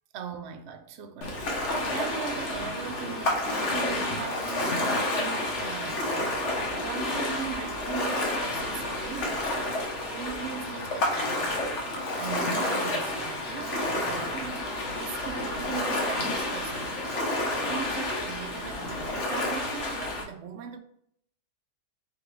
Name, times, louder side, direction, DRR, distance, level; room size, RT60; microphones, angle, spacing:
voice 1, 0.1-6.4 6.7-11.7 12.2-17.0 17.3-20.8, right 7 dB, 70° right, 0.6 m, -40 dB
Ocean, 1.2-20.2, left 1 dB, 55° left, 1.0 m, -30 dB
3.7 x 3.7 x 3.1 m
omnidirectional pair, 1.7 m